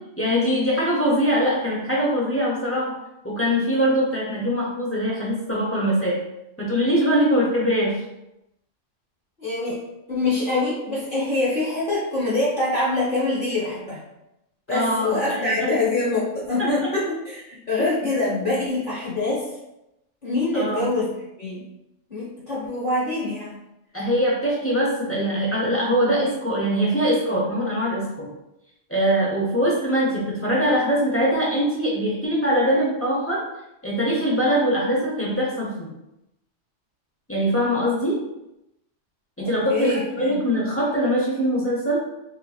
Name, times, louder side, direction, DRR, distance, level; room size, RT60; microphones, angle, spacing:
voice 1, 0.2-2.9 3.2-6.2 6.6-7.9 14.7-15.7 16.6-16.7 17.8-17.9 20.5-20.9 23.9-28.3 28.9-33.4 33.8-35.9 37.3-38.2 39.4-42.0, equal, 15° left, -5 dB, 0.5 m, -22 dB
voice 2, 9.4-9.8 10.1-14.0 14.7-19.5 20.2-21.6 22.1-23.6 39.4-40.4, left 2 dB, 45° left, -8 dB, 0.9 m, -25 dB
3.8 x 2.8 x 2.3 m, 0.89 s
omnidirectional pair, 1.3 m